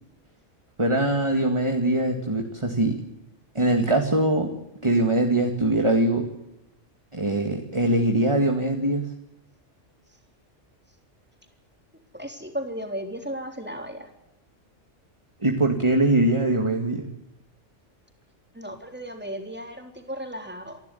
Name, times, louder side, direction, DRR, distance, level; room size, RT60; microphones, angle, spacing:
voice 1, 0.8-3.0 3.5-4.5 4.8-6.3 7.1-9.1 15.4-17.1, right 1 dB, 25° right, 4 dB, 2.2 m, -22 dB
voice 2, 12.1-14.1 18.5-20.8, equal, 10° right, 4 dB, 3.7 m, -35 dB
28.5 x 12.0 x 10.0 m, 0.89 s
omnidirectional pair, 1.3 m